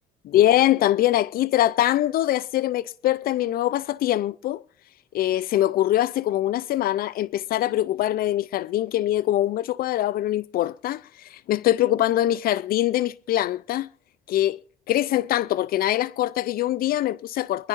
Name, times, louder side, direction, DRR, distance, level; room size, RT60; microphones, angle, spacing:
voice 1, 0.3-4.6 5.1-13.9 14.3-14.6 14.9-17.7, left 13 dB, 60° left, 0.5 m, -23 dB
24.5 x 11.5 x 2.5 m
supercardioid pair, 80°, 17 cm